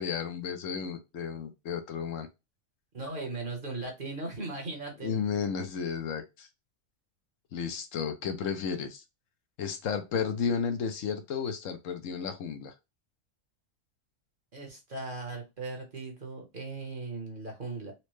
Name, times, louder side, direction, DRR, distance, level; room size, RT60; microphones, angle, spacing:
voice 1, 0.0-2.3 5.0-6.5 7.5-9.0 9.6-12.7, left 6 dB, 75° left, 7 dB, 1.0 m, -33 dB
voice 2, 2.9-5.2 14.5-17.9, right 3 dB, 45° right, 2 dB, 1.1 m, -38 dB
4.2 x 2.1 x 3.0 m, 0.24 s
omnidirectional pair, 1.4 m